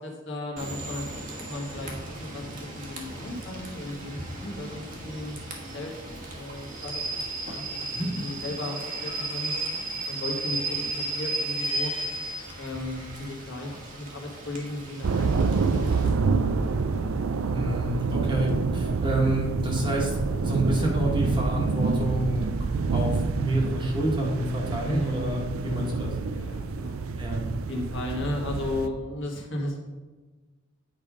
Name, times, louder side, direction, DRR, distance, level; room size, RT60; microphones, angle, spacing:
voice 1, 0.0-5.4 5.7-5.9 6.2-7.0 7.4-9.5 10.1-11.9 12.6-16.8 24.8-25.3 25.6-25.9 26.3-27.0 27.7-29.9, left 1 dB, 60° left, 0 dB, 1.5 m, -35 dB
Rain / Train, 0.6-16.0, right 2 dB, 40° right, 1.3 m, -35 dB
sound 1, 15.0-28.9, right 4 dB, 85° right, 0.4 m, -27 dB
voice 2, 17.5-22.6 22.9-26.1 27.2-27.5, right 1 dB, 25° right, -1 dB, 1.4 m, -28 dB
9.0 x 3.6 x 4.9 m, 1.3 s
head